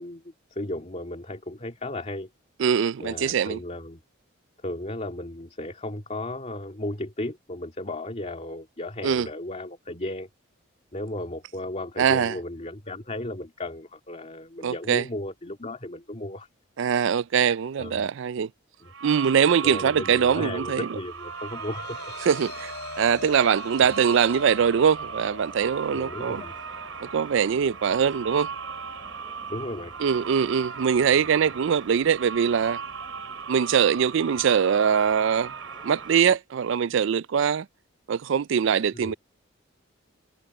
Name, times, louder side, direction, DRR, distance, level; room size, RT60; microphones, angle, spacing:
voice 1, 0.0-2.3 3.0-4.0 4.6-10.3 10.9-16.5 17.8-18.1 18.8-18.9 19.6-22.0 23.4-23.6 25.9-26.5 29.5-29.9 38.9-39.2, left 1 dB, 35° left, 2.3 m, -35 dB
voice 2, 2.6-3.6 9.0-9.3 12.0-12.4 14.6-15.0 16.8-18.5 19.0-20.9 22.2-26.4 27.0-28.5 30.0-32.8 33.5-35.5 35.8-37.7 38.1-39.1, right 7 dB, 65° right, 0.4 m, -22 dB
sound 1, 18.8-36.2, right 6 dB, 85° right, 3.7 m, -38 dB
sound 2, 20.9-33.2, left 3 dB, 60° left, 5.3 m, -45 dB
sound 3, 23.6-36.4, right 1 dB, 20° right, 6.0 m, -52 dB
head